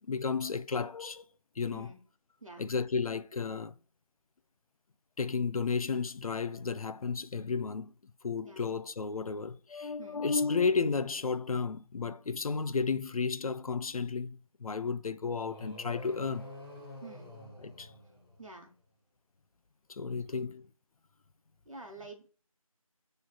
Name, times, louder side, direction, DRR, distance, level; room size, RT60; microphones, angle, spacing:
voice 1, 0.1-1.2 1.6-1.9 2.6-3.7 5.2-7.9 8.2-16.5 17.6-17.9 19.9-20.7, left 5 dB, 80° left, 0.4 m, -33 dB
sound 1, 15.3-18.7, left 1 dB, 40° left, 0.9 m, -48 dB
voice 2, 17.0-17.3 18.4-18.7 20.3-20.5 21.7-22.3, right 3 dB, 65° right, 1.0 m, -48 dB
6.0 x 3.2 x 2.3 m
figure-of-eight pair, 175°, 18 cm